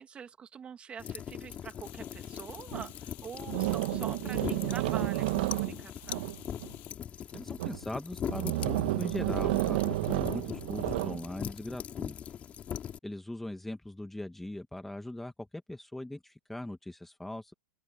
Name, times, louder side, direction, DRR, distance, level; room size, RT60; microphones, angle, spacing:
voice 1, 0.0-6.3, right 7 dB, 20° right, 2.3 m, -45 dB
sound 1, 1.0-13.0, left 9 dB, 25° left, 2.8 m, -40 dB
sound 2, 1.8-6.9, left 26 dB, 40° left, 7.5 m, -54 dB
table scrape, 2.7-2.9 3.5-6.7 7.3-7.8 8.2-11.2, right 19 dB, 55° right, 1.4 m, -31 dB
voice 2, 7.3-12.2 13.0-17.5, left 1 dB, 5° left, 1.3 m, -40 dB
open air
hypercardioid pair, 135°, 6 cm